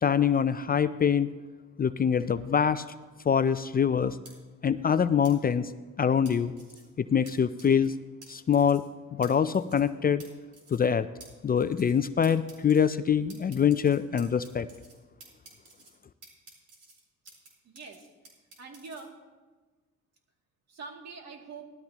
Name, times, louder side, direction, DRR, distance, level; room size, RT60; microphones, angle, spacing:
voice 1, 0.0-1.3 1.8-2.8 3.3-4.2 4.6-5.7 6.0-6.5 7.0-7.9 8.3-8.8 9.1-10.2 10.7-11.1 11.4-14.7, left 7 dB, 30° left, 12 dB, 0.4 m, -24 dB
sound 1, 4.3-4.4 5.2-5.3 6.3-6.8 7.3-7.4 7.6-7.9 8.2-8.3 8.5-8.9 9.2-9.3 9.5-9.9 10.2-10.3 10.5-10.9 11.2-11.3 11.6-12.0 12.2-12.8 13.3-15.0 15.2-15.9 16.2-17.5 17.8-19.0, right 3 dB, 80° right, 4.2 m, -52 dB
voice 2, 17.6-18.1 18.6-19.1 20.7-21.7, right 4 dB, 60° right, 1 dB, 2.5 m, -44 dB
18.0 x 13.0 x 2.9 m, 1.3 s
cardioid pair, 90°, 30 cm